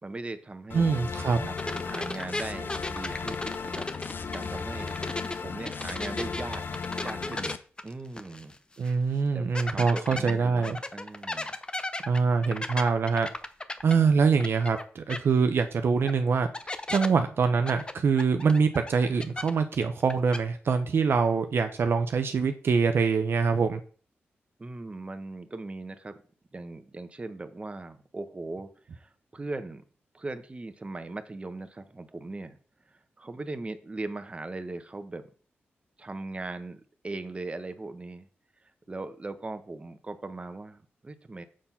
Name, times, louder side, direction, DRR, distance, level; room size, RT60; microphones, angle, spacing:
voice 1, 0.0-1.0 1.5-3.9 4.3-5.0 5.4-6.6 7.0-7.6 7.8-8.5 9.3-11.6 24.6-26.2 26.5-29.8 30.1-32.6 33.2-35.2 36.0-38.3 38.9-41.4, right 2 dB, 30° right, 9 dB, 1.0 m, -39 dB
sound 1, 0.7-7.6, left 5 dB, 55° left, 0.6 m, -36 dB
voice 2, 0.7-1.5 8.8-10.8 12.1-13.3 13.8-16.5 16.9-23.8, right 5 dB, 65° right, 7 dB, 0.7 m, -24 dB
sound 2, 1.6-5.4 5.6-8.5 8.8-8.9 9.5-14.8 15.1-15.2 16.1-16.2 16.5-17.1 17.7-19.7 20.0-20.4, left 2 dB, 20° left, 0.7 m, -35 dB
7.5 x 4.3 x 5.6 m, 0.41 s
cardioid pair, 75°, 4 cm